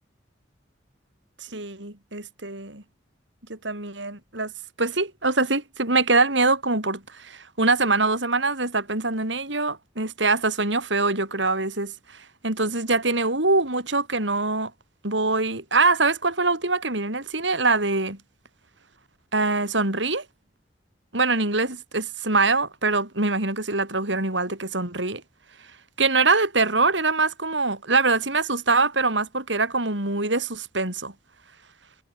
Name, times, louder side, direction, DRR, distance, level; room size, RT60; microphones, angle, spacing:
voice 1, 1.4-2.8 3.5-4.5 4.8-14.7 15.0-18.2 19.3-20.2 21.1-25.2 26.0-31.1, right 3 dB, 85° right, 6.4 m, -24 dB
head